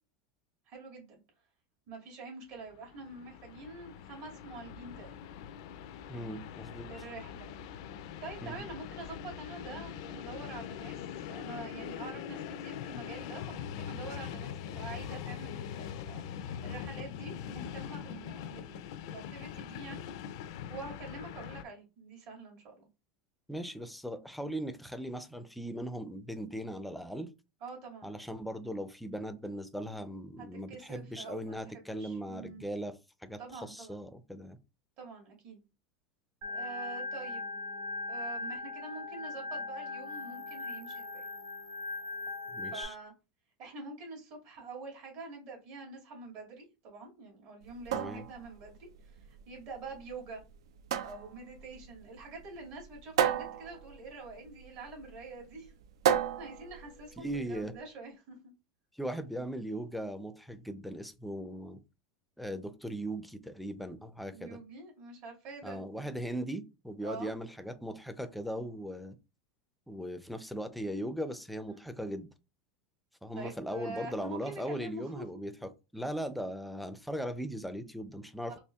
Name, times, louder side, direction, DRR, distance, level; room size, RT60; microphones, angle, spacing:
voice 1, 0.7-1.2 1.9-5.2 6.8-7.6 8.2-16.3 16.6-20.0 20.7-22.9 27.6-28.2 30.4-32.6 33.4-34.0 35.0-35.6 36.4-37.6 38.1-41.3 42.7-43.1 43.6-50.4 51.0-55.7 56.4-58.5 64.3-65.8 67.0-67.3 71.6-71.8 73.4-75.3 78.4-78.6, right 3 dB, 60° right, 2.0 m, -46 dB
Train, 2.7-21.6, left 9 dB, 70° left, 0.4 m, -42 dB
voice 2, 6.1-6.9 8.4-8.6 23.5-27.3 28.0-33.0 33.2-34.6 42.5-42.9 47.9-48.3 57.2-57.7 59.0-61.8 62.4-64.6 65.6-69.2 69.9-72.3 73.2-78.6, equal, ahead, 0.4 m, -39 dB
Organ, 36.4-42.8, left 3 dB, 45° right, 1.2 m, -39 dB
sound 1, 47.6-57.6, right 9 dB, 85° right, 0.4 m, -34 dB
4.2 x 2.9 x 2.3 m
supercardioid pair, 120°, 3 cm